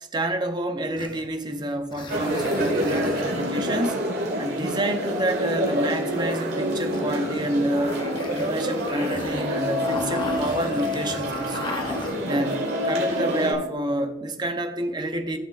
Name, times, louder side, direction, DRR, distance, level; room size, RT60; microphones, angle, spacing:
voice 1, 0.1-4.1 4.4-8.0 8.3-11.7 12.3-15.4, right 1 dB, 25° right, 0.7 m, -28 dB
sound 1, 1.0-3.9 6.9-12.4, left 2 dB, 25° left, 0.8 m, -37 dB
sound 2, 2.1-13.5, equal, 55° right, 2.0 m, -27 dB
15.0 x 6.1 x 2.5 m
head